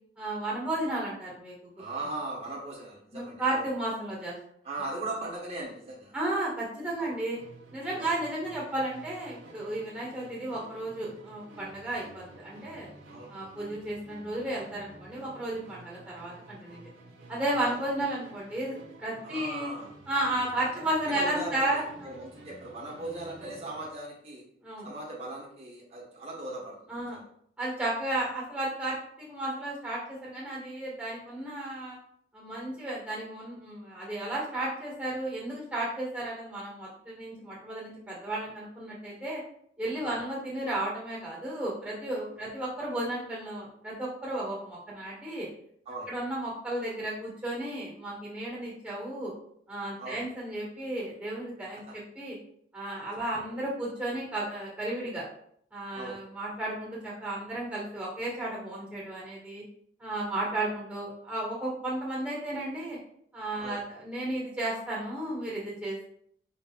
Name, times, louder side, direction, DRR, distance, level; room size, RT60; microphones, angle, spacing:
voice 1, 0.2-1.5 3.1-4.4 6.1-7.4 7.7-12.9 13.3-16.8 17.3-19.7 20.1-22.2 24.6-24.9 26.9-27.2 27.6-32.0 32.3-39.4 39.8-45.5 46.1-49.3 49.7-52.4 52.7-55.2 55.7-59.6 60.0-63.0 63.3-66.1, right 1 dB, 5° right, -6 dB, 1.8 m, -33 dB
voice 2, 1.8-3.7 4.6-6.1 7.0-7.1 7.9-8.1 13.1-13.3 17.6-17.8 19.2-19.9 21.1-24.4 24.8-27.2 40.0-40.2 42.4-42.5 45.8-46.1 50.0-50.3 51.9-52.0 53.4-53.5 55.9-56.2 63.6-63.8, right 2 dB, 30° right, -5 dB, 1.3 m, -39 dB
Musical instrument, 7.3-24.0, right 1 dB, 80° right, 1.1 m, -51 dB
5.1 x 4.1 x 2.5 m, 0.65 s
head